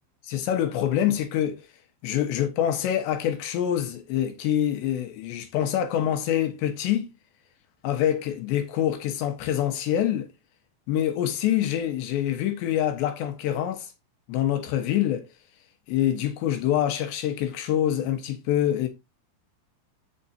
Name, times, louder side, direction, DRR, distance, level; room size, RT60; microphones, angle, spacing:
voice 1, 0.2-1.6 2.0-7.1 7.8-10.3 10.9-13.9 14.3-15.3 15.9-18.9, left 11 dB, 75° left, 3.4 m, -25 dB
8.6 x 8.0 x 2.8 m
omnidirectional pair, 5.3 m